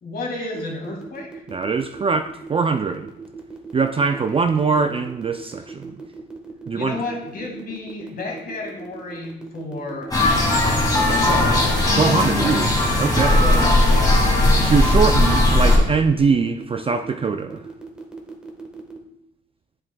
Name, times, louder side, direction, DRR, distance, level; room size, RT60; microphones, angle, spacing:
voice 1, 0.0-1.3 4.0-4.2 5.4-5.5 6.7-10.5 11.1-11.8 12.4-12.8 13.4-14.2, left 3 dB, 50° left, 1 dB, 2.1 m, -32 dB
sound 1, 0.5-19.0, right 4 dB, 5° right, 1.3 m, -38 dB
voice 2, 1.5-3.1 3.7-5.9 6.7-7.0 12.0-13.4 14.6-17.6, right 5 dB, 30° right, 7 dB, 0.4 m, -22 dB
sound 2, 10.1-15.8, left 1 dB, 20° left, 2.2 m, -17 dB
7.7 x 7.5 x 2.3 m, 0.80 s
cardioid pair, 90°, 20 cm